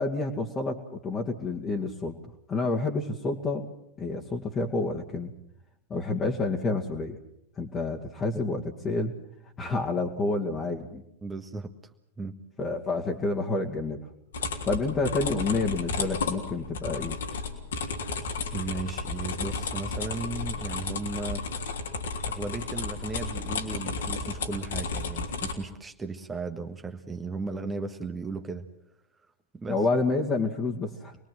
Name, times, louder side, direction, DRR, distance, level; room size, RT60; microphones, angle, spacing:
voice 1, 0.0-3.7 4.0-5.3 5.9-7.2 7.6-9.2 9.6-11.0 12.6-14.0 14.6-17.2 29.7-31.2, left 3 dB, 25° left, -2 dB, 2.3 m, -29 dB
voice 2, 11.2-11.7 12.2-12.3 18.5-21.4 22.2-28.7 29.5-29.8, right 3 dB, 15° right, 6 dB, 1.5 m, -36 dB
sound 1, 14.3-25.5, left 4 dB, 65° left, 3.3 m, -33 dB
27.0 x 21.0 x 7.7 m, 0.78 s
figure-of-eight pair, 90°, 0 cm